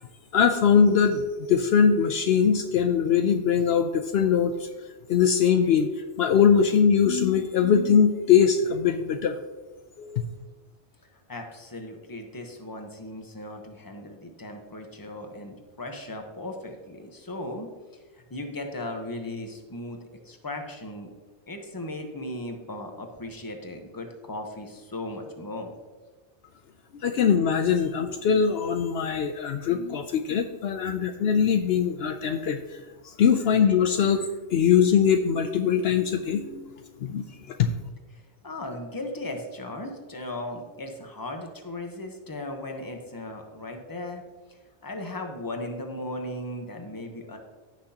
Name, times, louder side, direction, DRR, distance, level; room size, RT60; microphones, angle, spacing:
voice 1, 0.3-1.2 1.5-4.7 5.1-5.9 6.2-9.4 10.0-10.2 26.9-32.6 33.0-34.2 34.5-36.7 37.0-37.2 37.6-37.7, left 7 dB, 70° left, 7 dB, 0.8 m, -22 dB
voice 2, 11.3-17.7 18.3-20.0 20.2-21.1 21.5-25.7 38.1-44.2 44.8-47.4, left 1 dB, 20° left, 3 dB, 1.0 m, -37 dB
15.5 x 6.1 x 2.9 m, 1.3 s
omnidirectional pair, 1.1 m